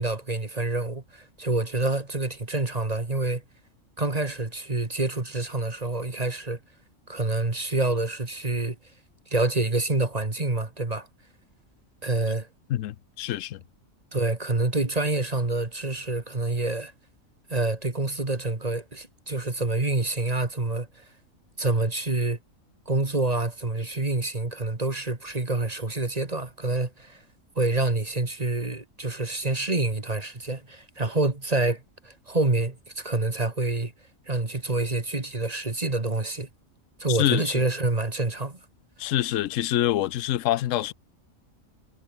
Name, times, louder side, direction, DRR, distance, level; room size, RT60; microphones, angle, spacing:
voice 1, 0.0-3.4 4.0-6.6 7.1-8.8 9.3-11.1 12.0-12.5 14.1-16.9 17.5-21.1 21.6-22.4 22.9-27.2 27.6-33.9 34.3-36.5 37.0-38.6, right 2 dB, 30° right, 2.0 m, -27 dB
voice 2, 12.7-13.6 37.1-37.6 39.0-40.9, left 13 dB, 70° left, 1.0 m, -26 dB
omnidirectional pair, 1.4 m